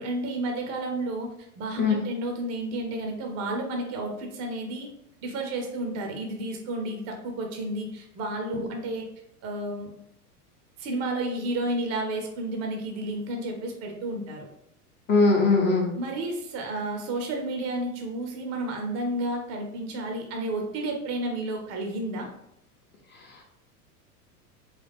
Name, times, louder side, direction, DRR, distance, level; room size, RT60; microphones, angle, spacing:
voice 1, 0.0-4.9 5.2-9.0 9.4-9.9 10.8-14.5 16.0-22.3, right 1 dB, 35° right, 2 dB, 0.8 m, -31 dB
voice 2, 15.1-15.9 23.1-23.4, left 3 dB, 25° left, 0 dB, 0.8 m, -21 dB
4.0 x 2.3 x 3.5 m, 0.76 s
hypercardioid pair, 100°, 47 cm